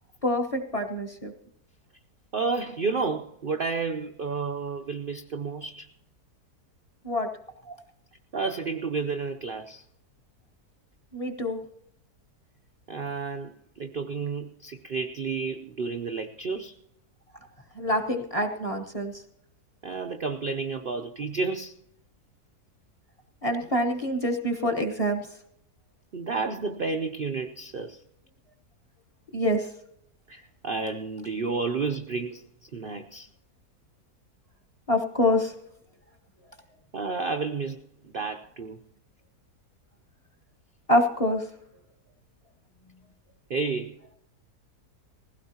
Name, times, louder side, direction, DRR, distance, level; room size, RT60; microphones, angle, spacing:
voice 1, 0.2-1.3 7.0-7.3 11.1-11.6 17.7-19.1 23.4-25.3 29.3-29.7 34.9-35.5 40.9-41.4, left 1 dB, 25° left, 3 dB, 1.0 m, -26 dB
voice 2, 2.3-5.9 7.7-7.8 8.3-9.8 12.9-16.8 19.8-21.7 26.1-28.0 30.3-33.3 36.9-38.8 43.5-44.0, right 4 dB, 55° right, 5 dB, 0.6 m, -31 dB
20.0 x 16.0 x 2.9 m, 0.74 s
omnidirectional pair, 1.7 m